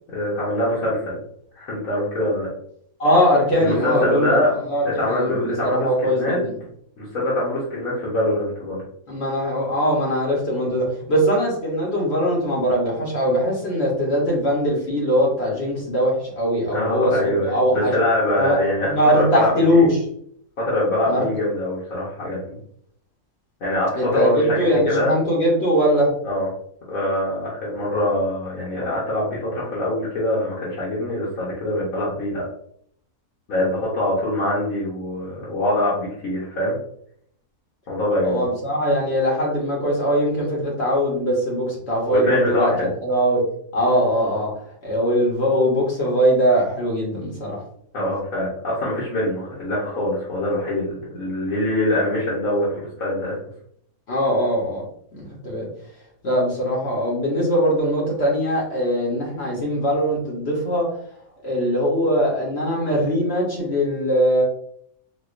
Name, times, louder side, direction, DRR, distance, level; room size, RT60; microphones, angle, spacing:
voice 1, 0.1-1.2 1.5-2.5 3.6-4.6 4.8-6.4 7.0-8.8 16.7-19.9 20.6-22.6 23.6-25.1 26.2-26.5 26.9-32.4 33.5-36.8 37.9-38.5 42.1-42.9 47.9-53.4, left 1 dB, 65° left, -8 dB, 1.3 m, -23 dB
voice 2, 3.0-4.4 4.7-6.5 9.1-17.1 17.4-17.9 18.4-18.6 18.9-19.9 21.0-21.2 24.0-26.1 38.2-42.7 43.0-43.4 43.7-44.5 44.8-47.6 54.1-54.8 55.1-55.7 56.2-60.9 61.4-64.4, equal, 50° left, -3 dB, 1.1 m, -21 dB
4.2 x 2.4 x 2.4 m, 0.67 s
omnidirectional pair, 1.6 m